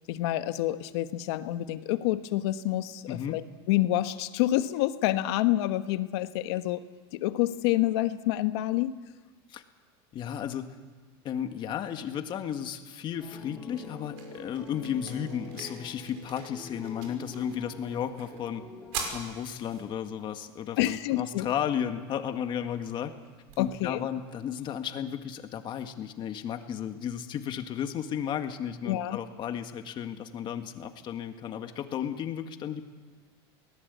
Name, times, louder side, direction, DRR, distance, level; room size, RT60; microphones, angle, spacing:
voice 1, 0.1-6.8 7.1-8.9 20.8-21.5 23.6-24.1 28.8-29.2, left 15 dB, 70° left, 10 dB, 1.3 m, -28 dB
voice 2, 3.1-3.4 9.5-9.6 10.1-10.7 11.2-18.6 19.1-23.1 23.6-32.8, left 9 dB, 35° left, 7 dB, 1.8 m, -34 dB
sound 1, 13.2-19.6, left 4 dB, 10° left, 2.5 m, -45 dB
sound 2, 13.2-25.2, right 5 dB, 65° right, 5.8 m, -46 dB
22.5 x 19.0 x 8.4 m, 1.4 s
supercardioid pair, 140°, 14 cm